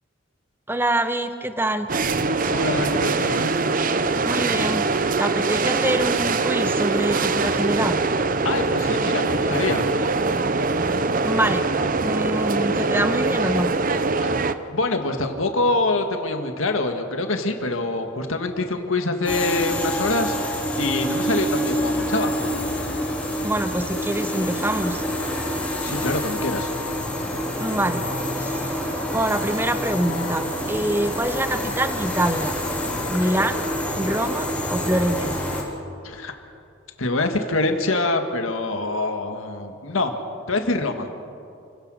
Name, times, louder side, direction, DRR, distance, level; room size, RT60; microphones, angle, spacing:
voice 1, 0.7-1.9 4.3-4.9 5.2-8.0 11.2-11.6 12.0-13.7 23.4-25.0 27.6-28.0 28.4-28.7 29.1-32.5 33.1-33.6 34.0-35.4, right 1 dB, 10° right, 9 dB, 0.8 m, -25 dB
sound 1, 1.9-14.5, right 3 dB, 40° right, 0.7 m, -23 dB
voice 2, 2.5-3.5 8.4-9.9 14.2-14.3 14.7-22.3 25.8-26.7 33.2-33.3 36.0-36.4 37.0-40.1 40.5-41.1, left 2 dB, 85° left, 6 dB, 1.7 m, -25 dB
sound 2, 19.2-35.6, equal, 5° left, 3.4 m, -27 dB
28.5 x 16.5 x 6.4 m, 2.5 s
head